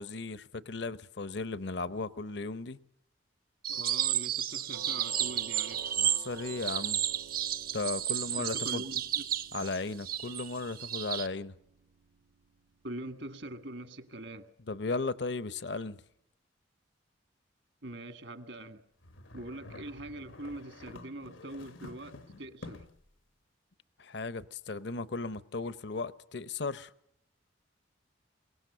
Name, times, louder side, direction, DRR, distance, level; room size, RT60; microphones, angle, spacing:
voice 1, 0.0-2.8 6.0-7.0 7.7-8.8 9.5-11.5 14.7-16.0 24.0-26.9, left 3 dB, 60° left, 0.8 m, -36 dB
sound 1, 3.6-11.3, right 10 dB, 50° right, 0.7 m, -32 dB
voice 2, 3.7-5.9 8.4-9.2 12.8-14.5 17.8-18.8 19.3-22.8, right 1 dB, 70° right, 1.8 m, -43 dB
Doorbell, 4.7-13.6, right 6 dB, 85° right, 0.8 m, -53 dB
sound 2, 19.0-23.1, left 2 dB, 85° left, 1.4 m, -49 dB
23.0 x 18.5 x 6.8 m
head